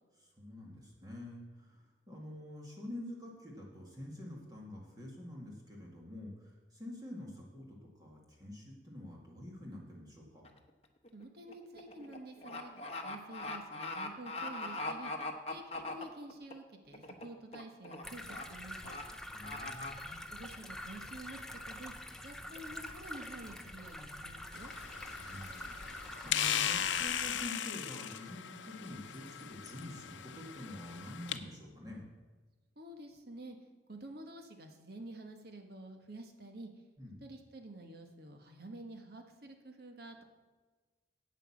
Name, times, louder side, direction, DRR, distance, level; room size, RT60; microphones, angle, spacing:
voice 1, 0.2-10.5 19.3-20.2 25.2-32.0 37.0-37.2, left 1 dB, 20° right, -2 dB, 2.0 m, -47 dB
sound 1, 10.4-10.7 11.0-16.5 16.9-17.3 17.5-18.0 18.3-18.4 18.8-19.0 19.4-19.9, left 2 dB, 35° left, 1.0 m, -41 dB
voice 2, 11.1-12.7 13.0-15.1 15.5-15.6 15.9-19.0 20.3-21.4 21.7-21.9 22.2-24.7 32.8-36.7 37.2-40.2, right 1 dB, 55° right, 4 dB, 1.4 m, -49 dB
sound 2, 18.0-27.5, left 1 dB, 5° left, 0.6 m, -46 dB
sound 3, 24.5-31.4, left 9 dB, 85° left, 0.7 m, -38 dB
9.0 x 8.4 x 7.2 m, 1.3 s
head